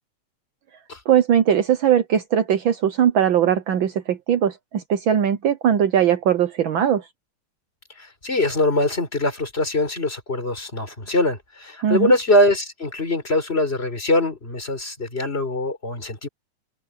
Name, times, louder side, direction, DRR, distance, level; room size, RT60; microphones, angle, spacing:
voice 1, 1.1-7.0 11.8-12.1, right 9 dB, 75° right, 1.1 m, -20 dB
voice 2, 8.0-16.3, left 1 dB, 20° left, 4.2 m, -22 dB
open air
omnidirectional pair, 3.3 m